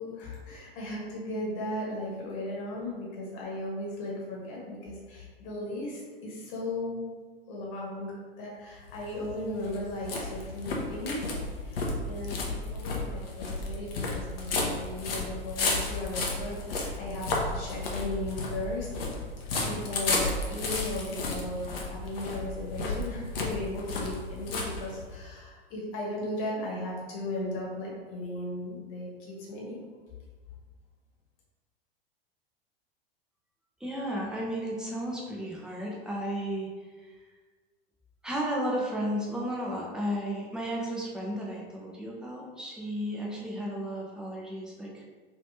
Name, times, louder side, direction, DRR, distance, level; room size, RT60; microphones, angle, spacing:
voice 1, 0.0-7.1 7.5-11.3 11.6-18.9 19.5-29.9, left 1 dB, 45° left, -3 dB, 1.2 m, -36 dB
sound 1, 8.8-25.3, left 3 dB, 70° left, 0.7 m, -33 dB
voice 2, 33.8-36.7 37.0-37.1 38.2-45.0, equal, ahead, -4 dB, 0.7 m, -33 dB
3.1 x 3.1 x 2.7 m, 1.4 s
figure-of-eight pair, 85°, 30 cm